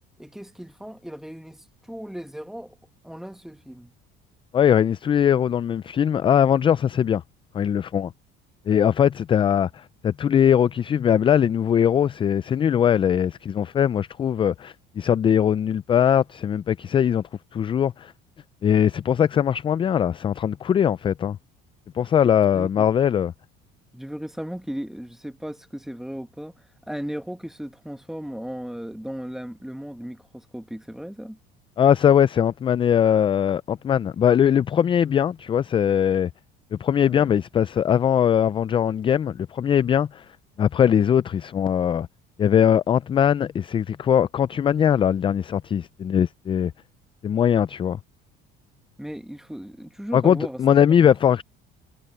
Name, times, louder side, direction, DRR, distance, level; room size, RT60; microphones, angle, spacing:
voice 1, 0.2-2.8 3.0-3.9 22.0-22.1 22.5-22.9 23.9-31.4 37.0-37.4 49.0-50.6, equal, ahead, 1.6 m, -36 dB
voice 2, 4.5-7.2 7.5-8.1 8.7-17.2 17.5-18.1 18.6-21.4 21.9-23.3 31.8-36.3 36.8-40.3 40.6-42.1 42.4-46.7 47.2-48.0 50.1-51.4, left 9 dB, 25° left, 0.3 m, -20 dB
cardioid pair, 120°, 21 cm